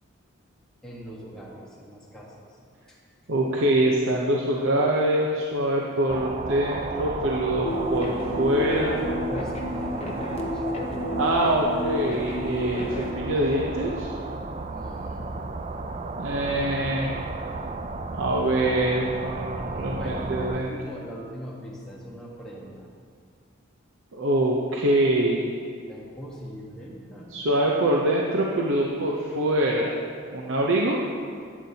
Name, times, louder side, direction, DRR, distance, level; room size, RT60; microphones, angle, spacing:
voice 1, 0.8-2.6 2.9-3.0 8.4-10.6 14.7-15.4 20.0-22.9 25.9-27.3, equal, 5° left, -6 dB, 1.2 m, -39 dB
voice 2, 3.3-8.9 11.2-14.1 16.2-17.2 18.1-20.7 24.1-25.5 27.3-30.0 30.3-31.0, right 1 dB, 70° right, -2 dB, 0.7 m, -24 dB
sound 1, 6.1-20.6, right 3 dB, 30° right, 0.3 m, -34 dB
sound 2, 7.6-13.1, left 1 dB, 30° left, 0.8 m, -31 dB
11.5 x 8.3 x 2.8 m, 2.2 s
head